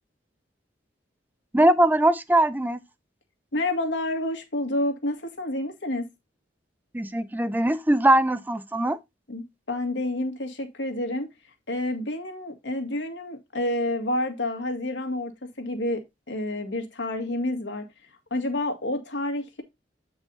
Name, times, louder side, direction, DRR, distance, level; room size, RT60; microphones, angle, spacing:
voice 1, 1.5-2.8 6.9-9.0, right 1 dB, 10° right, 0.4 m, -21 dB
voice 2, 3.5-6.1 9.3-11.3 11.7-15.3 15.6-16.0 16.3-17.8 18.3-19.6, left 1 dB, 80° left, 1.8 m, -29 dB
8.3 x 4.8 x 4.0 m
head